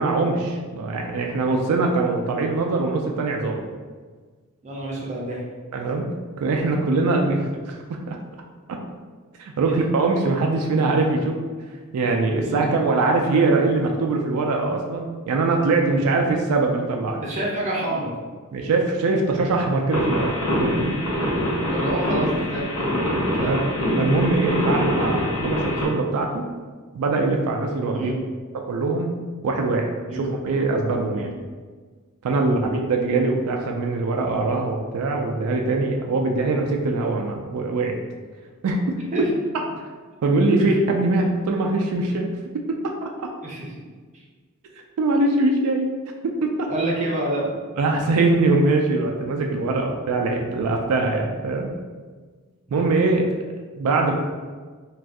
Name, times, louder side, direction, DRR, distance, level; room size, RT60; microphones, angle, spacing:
voice 1, 0.0-3.6 5.7-6.1 6.4-7.8 8.1-8.2 8.7-8.8 9.4-11.4 11.9-17.2 18.5-21.0 23.5-23.6 24.0-26.5 26.9-28.1 28.7-29.1 29.4-31.3 32.2-38.0 38.6-38.8 39.2-39.3 40.2-42.9 45.0-45.9 46.2-46.7 47.8-51.7 52.7-53.3 53.8-54.1, right 3 dB, 85° right, 2 dB, 0.3 m, -22 dB
voice 2, 4.6-5.4 9.7-9.8 12.6-12.7 17.2-18.1 20.8-21.0 21.7-23.5 27.9-28.1 30.1-30.2 31.1-31.3 32.4-32.6 39.1-39.3 40.6-40.8 43.4-43.7 44.1-44.2 46.7-47.5 52.7-52.8, right 1 dB, 30° right, -3 dB, 0.6 m, -28 dB
sound 1, 19.9-25.9, equal, 90° left, 1.0 m, -24 dB
2.5 x 2.3 x 3.4 m, 1.5 s
head